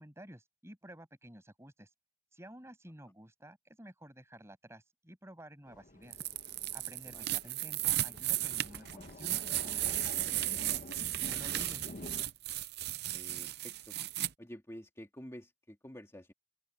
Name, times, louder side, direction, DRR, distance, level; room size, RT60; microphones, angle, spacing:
voice 1, 0.0-1.9 2.3-6.2 6.7-10.9 11.2-11.9, right 1 dB, 15° right, 7.9 m, -52 dB
sound 1, 5.7-12.2, left 1 dB, 45° left, 1.3 m, -49 dB
sound 2, 6.1-14.3, right 14 dB, 55° right, 0.7 m, -35 dB
voice 2, 13.1-14.0 14.4-16.3, equal, 15° left, 2.2 m, -49 dB
open air
head